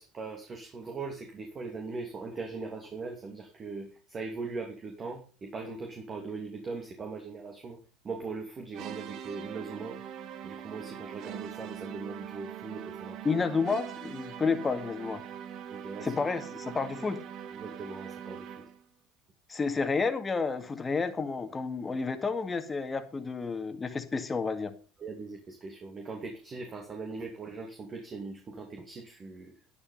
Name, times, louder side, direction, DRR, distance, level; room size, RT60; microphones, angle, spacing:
voice 1, 0.0-10.0 10.4-13.3 15.7-16.1 17.5-18.6 25.0-29.6, right 4 dB, 35° right, 3 dB, 2.7 m, -40 dB
sound 1, 8.7-18.9, right 9 dB, 55° right, 1.3 m, -42 dB
voice 2, 13.2-15.2 16.0-17.2 19.5-24.7, left 4 dB, 25° left, 8 dB, 2.1 m, -30 dB
11.0 x 9.7 x 5.4 m, 0.35 s
hypercardioid pair, 80°, 0 cm